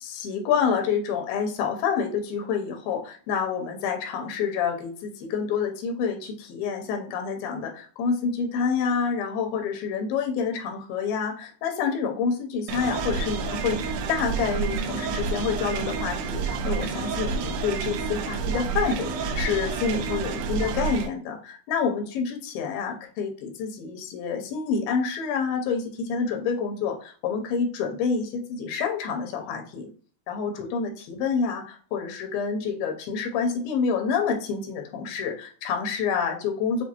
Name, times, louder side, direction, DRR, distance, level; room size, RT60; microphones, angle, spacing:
voice 1, 0.0-29.9 30.3-36.8, left 6 dB, 85° left, 3 dB, 2.6 m, -28 dB
sound 1, 12.7-21.1, right 5 dB, 85° right, 2.4 m, -29 dB
6.9 x 2.3 x 2.9 m, 0.43 s
omnidirectional pair, 4.1 m